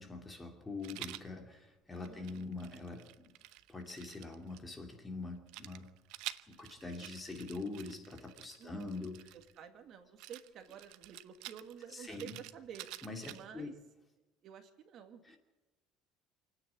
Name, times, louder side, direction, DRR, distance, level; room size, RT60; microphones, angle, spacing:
voice 1, 0.0-3.1 3.7-5.9 6.5-9.3 11.9-12.3 13.0-13.7 15.2-15.4, left 3 dB, 15° left, 4 dB, 2.7 m, -44 dB
Rattle, 0.8-1.3 1.9-4.6 5.5-9.6 10.2-13.6, right 16 dB, 75° right, 0.8 m, -49 dB
voice 2, 2.0-2.5 8.6-8.9 9.3-12.9 13.3-13.8 14.4-15.2, right 8 dB, 45° right, 7 dB, 2.0 m, -51 dB
28.0 x 9.6 x 9.8 m, 1.2 s
cardioid pair, 150°, 0 cm